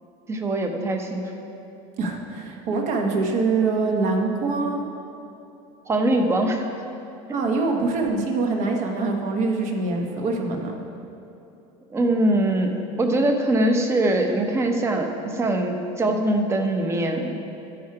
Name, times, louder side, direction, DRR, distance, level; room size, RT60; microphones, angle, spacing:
voice 1, 0.3-1.3 5.9-6.7 11.9-17.4, right 1 dB, 20° right, 4 dB, 0.8 m, -22 dB
voice 2, 2.0-4.9 7.3-10.8, right 3 dB, 55° right, 2 dB, 1.3 m, -24 dB
13.0 x 4.8 x 4.8 m, 2.9 s
cardioid pair, 145°, 15 cm